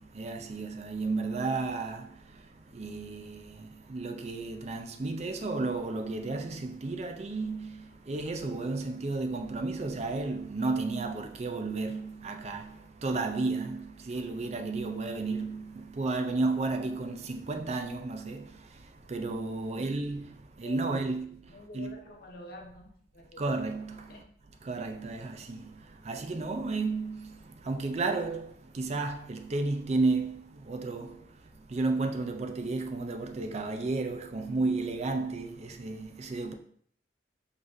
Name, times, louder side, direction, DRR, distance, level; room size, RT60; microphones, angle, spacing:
voice 1, 0.0-22.0 23.4-24.2 24.6-36.5, right 3 dB, 35° right, 0.4 m, -33 dB
voice 2, 19.6-20.0 20.6-21.1 21.5-23.5 24.1-24.2, left 2 dB, 50° left, 0.8 m, -48 dB
4.5 x 3.9 x 2.6 m
head